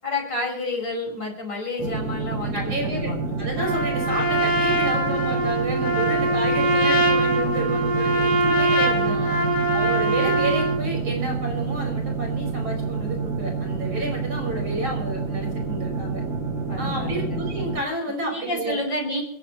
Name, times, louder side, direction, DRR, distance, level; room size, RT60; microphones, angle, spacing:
voice 1, 0.0-3.4 8.7-9.6 16.7-17.4 18.2-19.2, left 2 dB, 55° left, 0 dB, 6.1 m, -30 dB
sound 1, 1.8-17.8, right 5 dB, 55° right, 2.6 m, -28 dB
voice 2, 2.5-3.1 3.4-9.2 9.7-16.2 16.8-18.8, right 1 dB, 85° right, 1 dB, 6.5 m, -30 dB
Trumpet, 3.6-10.8, right 1 dB, 10° left, 2.2 m, -22 dB
28.5 x 11.0 x 3.1 m, 0.73 s
omnidirectional pair, 2.2 m